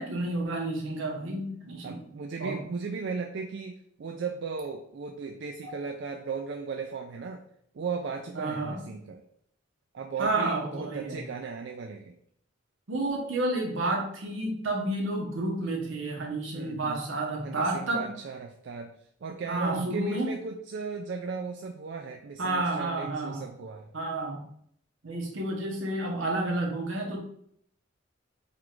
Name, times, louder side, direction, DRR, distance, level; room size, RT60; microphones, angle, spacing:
voice 1, 0.0-2.1 2.4-2.6 5.6-5.7 8.3-8.8 10.2-11.2 12.9-18.1 19.5-20.3 22.4-23.5 23.9-24.4 25.0-27.2, right 2 dB, 80° right, 0 dB, 1.1 m, -30 dB
voice 2, 1.8-7.4 7.7-9.2 9.9-12.2 16.5-17.0 17.4-18.9 19.2-23.9, right 5 dB, 60° right, 4 dB, 0.3 m, -36 dB
3.8 x 2.4 x 4.5 m, 0.68 s
head